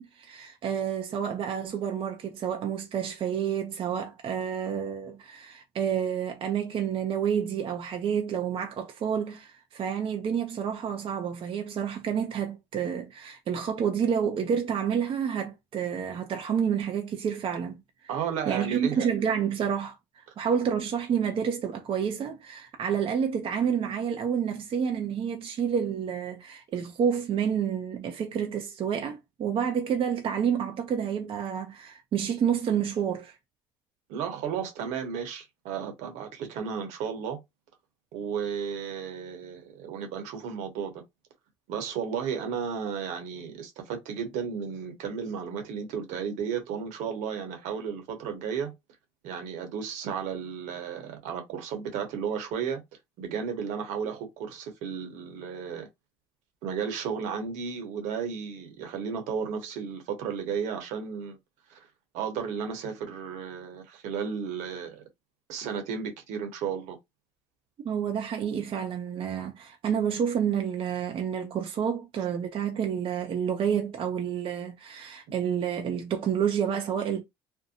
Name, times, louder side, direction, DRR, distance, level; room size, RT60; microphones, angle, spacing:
voice 1, 0.0-17.8 18.5-33.4 67.8-77.2, right 8 dB, 45° right, 0.6 m, -29 dB
voice 2, 18.1-19.1 34.1-37.4 38.1-40.9 41.7-48.7 49.2-52.8 53.2-55.9 56.6-61.4 61.7-61.9 62.1-65.0 65.5-67.0, right 7 dB, 70° right, 1.0 m, -33 dB
2.6 x 2.1 x 2.7 m
supercardioid pair, 85°, 13 cm